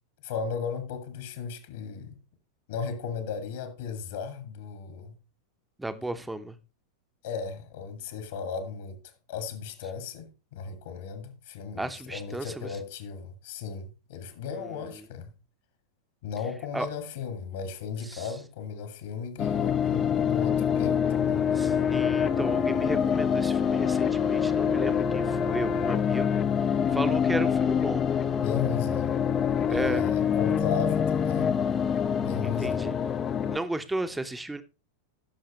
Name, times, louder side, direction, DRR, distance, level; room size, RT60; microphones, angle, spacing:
voice 1, 0.2-2.2 2.7-5.2 7.2-9.0 9.3-15.3 16.2-21.5 28.4-29.1 29.7-31.6 32.2-32.9, left 6 dB, 55° left, 1.9 m, -36 dB
voice 2, 5.8-6.6 11.8-12.7 16.7-16.9 18.1-18.3 21.5-26.4 26.9-28.1 29.7-30.1 32.6-33.0 33.5-34.6, right 2 dB, 5° right, 0.9 m, -34 dB
sound 1, 19.4-33.6, left 7 dB, 25° left, 0.6 m, -25 dB
15.0 x 6.5 x 3.1 m
figure-of-eight pair, 90°, 0 cm